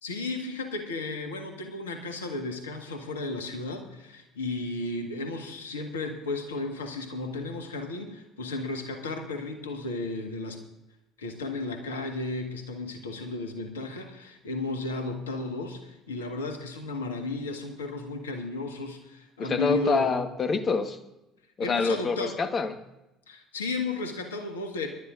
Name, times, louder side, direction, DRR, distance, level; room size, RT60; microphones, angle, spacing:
voice 1, 0.0-10.6 11.2-20.1 21.6-22.4 23.3-24.9, left 3 dB, 75° left, 1.6 m, -34 dB
voice 2, 19.4-21.0 21.6-22.7, left 4 dB, 35° left, 1.3 m, -26 dB
24.5 x 12.0 x 2.5 m
figure-of-eight pair, 55°, 0 cm